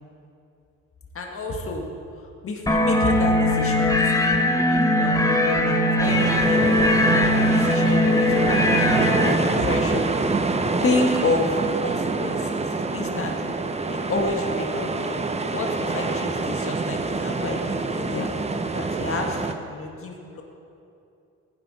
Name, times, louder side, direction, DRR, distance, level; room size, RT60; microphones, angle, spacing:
voice 1, 1.1-1.8 2.4-6.7 7.1-10.1 10.8-13.5 13.8-15.1 15.5-18.3 18.7-20.4, left 3 dB, 45° left, 2 dB, 1.6 m, -30 dB
sound 1, 2.7-9.3, left 1 dB, 10° left, 1.1 m, -20 dB
sound 2, 6.0-19.5, right 3 dB, 20° right, 0.8 m, -26 dB
15.5 x 10.0 x 4.1 m, 2.7 s
cardioid pair, 90°, 30 cm